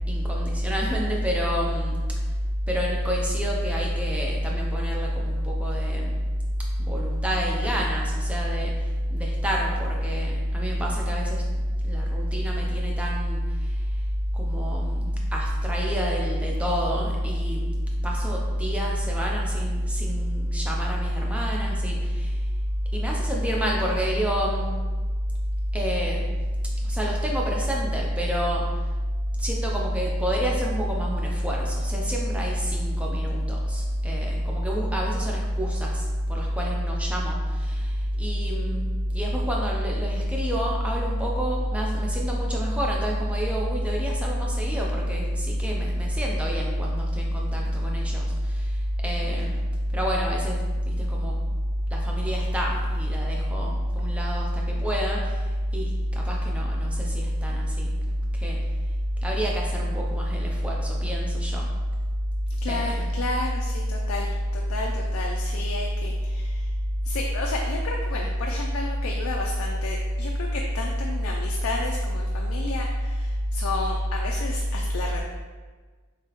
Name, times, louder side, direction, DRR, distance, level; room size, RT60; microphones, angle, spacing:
voice 1, 0.1-2.0 2.7-6.2 6.8-8.7 9.1-11.4 11.8-13.4 14.3-17.7 18.0-22.3 22.9-24.7 25.7-26.3 26.8-28.6 29.4-48.8 49.0-49.6 49.9-51.4 51.9-55.4 55.7-57.9 58.3-58.6 59.2-61.7 62.7-63.1, equal, 5° right, -2 dB, 0.5 m, -26 dB
voice 2, 62.6-66.7 67.0-75.2, left 3 dB, 65° left, 0 dB, 0.4 m, -33 dB
3.6 x 3.3 x 2.9 m, 1.4 s
head